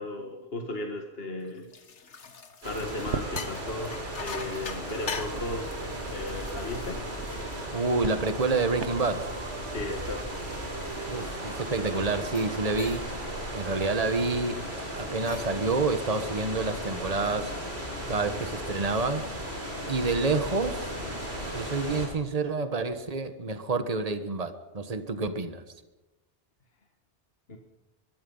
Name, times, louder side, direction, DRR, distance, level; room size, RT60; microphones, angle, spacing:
voice 1, 0.0-1.7 2.6-5.7 6.1-7.1 9.6-10.3 27.5-27.6, left 2 dB, 60° left, 3 dB, 1.9 m, -36 dB
sound 1, 1.4-8.2 8.7-11.7 12.2-12.5 12.8-13.3 13.6-13.9 15.0-15.6, left 5 dB, 85° left, 1.8 m, -43 dB
sound 2, 2.6-22.1, equal, 65° right, 6.3 m, -36 dB
sound 3, 2.8-13.9, right 5 dB, 80° right, 1.5 m, -41 dB
voice 2, 7.7-9.2 11.1-13.0 13.5-14.6 14.9-17.5 18.1-19.2 19.9-20.9 21.5-25.6, right 3 dB, 35° right, 9 dB, 1.5 m, -28 dB
24.0 x 22.5 x 5.6 m, 1.0 s
omnidirectional pair, 1.2 m